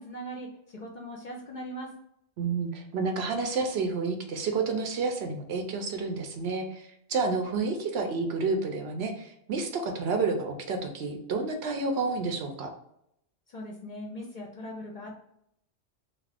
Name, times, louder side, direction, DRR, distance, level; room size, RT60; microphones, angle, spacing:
voice 1, 0.0-1.9 13.5-15.2, equal, 50° left, 0 dB, 0.6 m, -40 dB
voice 2, 2.4-12.7, right 4 dB, 70° right, 4 dB, 0.8 m, -30 dB
2.8 x 2.5 x 3.3 m, 0.75 s
omnidirectional pair, 1.2 m